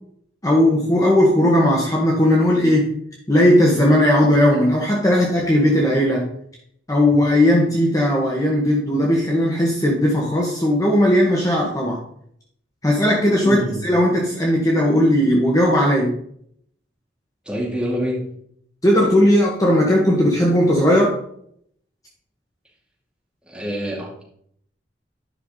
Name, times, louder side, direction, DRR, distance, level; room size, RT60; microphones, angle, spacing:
voice 1, 0.4-2.9 3.3-6.3 6.9-12.0 12.8-16.2 18.8-21.2, left 1 dB, 20° left, -2 dB, 1.3 m, -17 dB
voice 2, 13.4-13.8 17.4-18.3 23.4-24.2, equal, 5° right, -4 dB, 2.4 m, -26 dB
10.0 x 5.8 x 3.8 m, 0.66 s
head